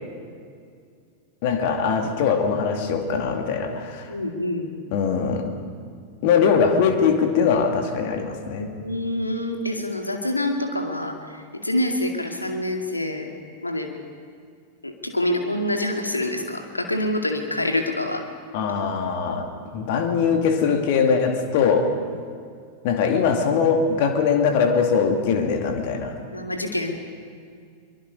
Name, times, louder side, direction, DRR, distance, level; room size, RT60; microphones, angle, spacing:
voice 1, 1.4-4.1 4.9-5.5 6.2-8.7 18.5-19.5 19.7-21.9 22.8-26.1, left 6 dB, 50° left, 5 dB, 2.4 m, -21 dB
voice 2, 4.1-4.7 8.6-13.3 13.6-13.9 14.8-18.2 22.1-22.2 26.3-27.0, left 1 dB, 85° left, 4 dB, 2.2 m, -26 dB
23.5 x 22.5 x 5.4 m, 2.2 s
figure-of-eight pair, 90°, 0 cm